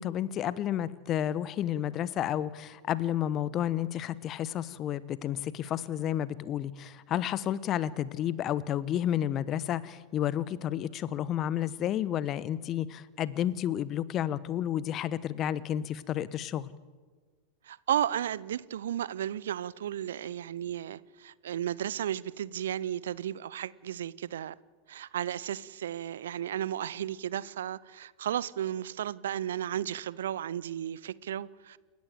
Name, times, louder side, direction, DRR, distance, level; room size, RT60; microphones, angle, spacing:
voice 1, 0.0-16.7, left 11 dB, 35° left, 0.9 m, -31 dB
voice 2, 17.6-24.6 24.9-31.8, right 10 dB, 65° right, 0.6 m, -34 dB
29.0 x 15.0 x 7.5 m
figure-of-eight pair, 90°, 0 cm